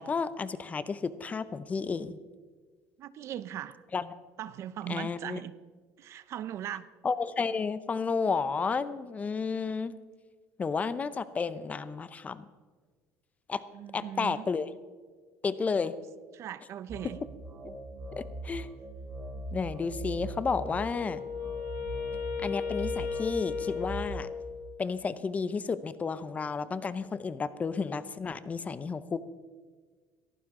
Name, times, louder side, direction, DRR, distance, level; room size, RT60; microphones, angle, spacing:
voice 1, 0.0-2.2 3.9-4.1 4.9-5.4 7.0-9.9 10.6-12.5 13.5-13.6 13.9-14.7 15.4-15.9 18.1-18.7 19.5-21.2 22.4-24.3 24.8-29.2, left 5 dB, 25° left, 15 dB, 0.6 m, -32 dB
voice 2, 3.0-3.8 4.4-5.5 6.0-6.9 13.7-14.5 16.3-17.2, right 11 dB, 50° right, 16 dB, 0.6 m, -39 dB
sound 1, 16.9-24.3, right 2 dB, 25° right, 3.0 m, -41 dB
Wind instrument woodwind instrument, 20.4-24.8, left 6 dB, 60° left, 3.2 m, -36 dB
17.5 x 14.5 x 3.7 m, 1.5 s
cardioid pair, 120°, 6 cm